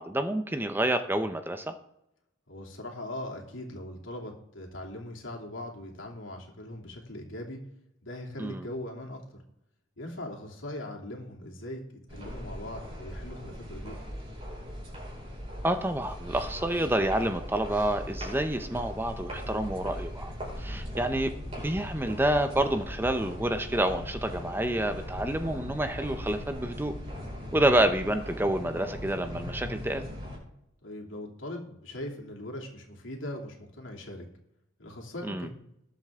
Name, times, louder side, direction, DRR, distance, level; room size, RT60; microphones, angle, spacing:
voice 1, 0.0-1.7 8.4-8.7 15.6-21.3 21.6-26.9 27.5-30.1 35.2-35.5, right 1 dB, 10° right, 7 dB, 0.7 m, -28 dB
voice 2, 2.5-7.6 8.0-9.2 10.0-11.8 12.1-14.0 20.6-20.8 27.4-27.6 30.8-34.2 34.8-35.5, left 1 dB, 70° left, 0 dB, 2.9 m, -40 dB
sound 1, 12.1-30.4, equal, 30° right, 5.3 m, -39 dB
20.0 x 7.7 x 3.7 m, 0.82 s
head